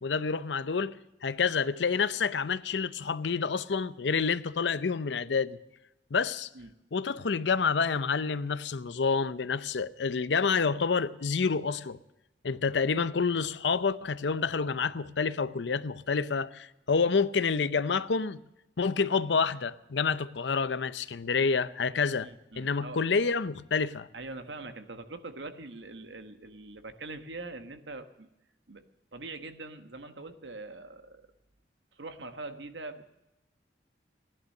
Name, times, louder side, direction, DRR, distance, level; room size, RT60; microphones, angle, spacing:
voice 1, 0.0-5.6 6.1-6.5 6.9-12.0 12.4-18.4 18.8-22.3 22.6-24.1, left 5 dB, 85° left, 0.6 m, -28 dB
voice 2, 22.2-23.0 24.1-28.3 28.7-28.9 29.1-31.3 31.9-33.0, right 3 dB, 90° right, 1.3 m, -43 dB
16.0 x 11.0 x 6.6 m
head